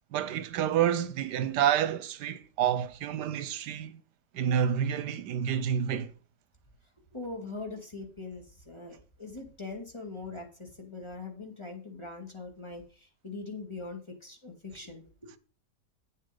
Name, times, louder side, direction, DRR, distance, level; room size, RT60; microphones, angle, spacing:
voice 1, 0.1-4.0 4.3-6.1, right 9 dB, 80° right, 1.3 m, -28 dB
voice 2, 7.1-15.4, left 3 dB, 15° left, 2.2 m, -42 dB
8.9 x 7.3 x 5.2 m
omnidirectional pair, 1.8 m